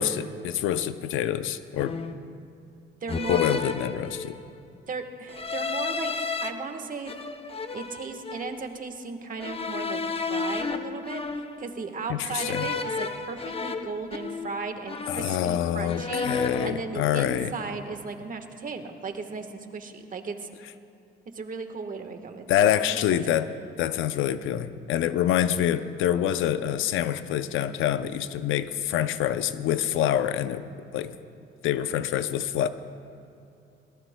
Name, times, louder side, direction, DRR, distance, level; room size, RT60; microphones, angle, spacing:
voice 1, 0.0-2.0 3.3-4.4 12.1-12.7 15.1-17.5 22.5-23.5 23.8-30.6 30.9-31.2 31.6-32.7, left 11 dB, 85° left, 12 dB, 0.5 m, -26 dB
sound 1, 0.7-0.9 1.8-2.3 3.1-4.5 5.3-6.5 7.1-8.6 9.4-11.8 12.4-14.6 14.9-15.6 15.9-16.8, left 4 dB, 30° left, 0.7 m, -32 dB
voice 2, 3.0-3.4 4.9-7.1 7.7-10.0 10.3-20.5 21.3-23.3, right 4 dB, 45° right, 6 dB, 1.3 m, -36 dB
21.5 x 18.5 x 2.2 m, 2.7 s
cardioid pair, 90°, 20 cm